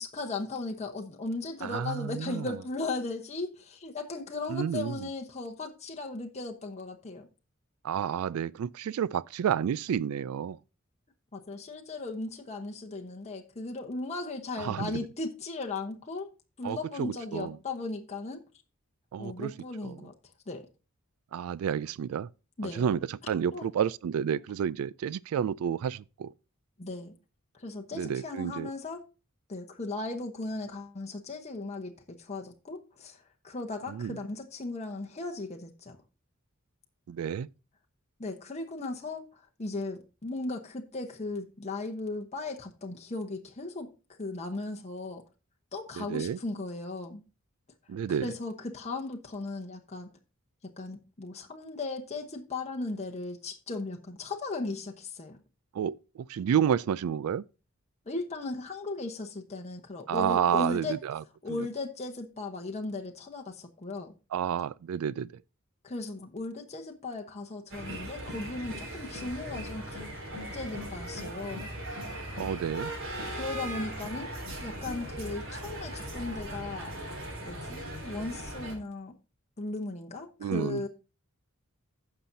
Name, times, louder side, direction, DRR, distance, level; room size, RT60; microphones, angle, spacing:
voice 1, 0.0-7.3 11.3-16.3 16.6-18.4 19.2-20.1 20.5-20.7 22.6-22.9 23.5-23.7 26.8-27.1 27.5-29.0 29.5-36.0 38.2-43.9 44.2-45.2 45.7-47.2 48.1-50.1 50.8-55.4 58.1-61.0 61.4-64.1 65.8-70.1 70.5-71.6 73.3-74.3 74.6-76.9 77.4-79.1 79.6-80.9, left 3 dB, 30° left, 1.0 m, -37 dB
voice 2, 1.6-2.5 4.5-5.1 7.8-10.6 14.6-15.1 16.6-17.6 19.1-19.5 19.8-20.1 21.3-22.3 22.6-26.3 27.9-28.7 33.9-34.2 37.1-37.5 46.0-46.4 47.9-48.3 55.7-57.4 60.1-61.2 61.5-61.7 64.3-65.4 72.4-72.9 80.4-80.8, right 8 dB, 90° right, 0.3 m, -30 dB
sound 1, 67.7-78.8, right 1 dB, 65° right, 3.3 m, -39 dB
15.5 x 5.9 x 2.7 m
head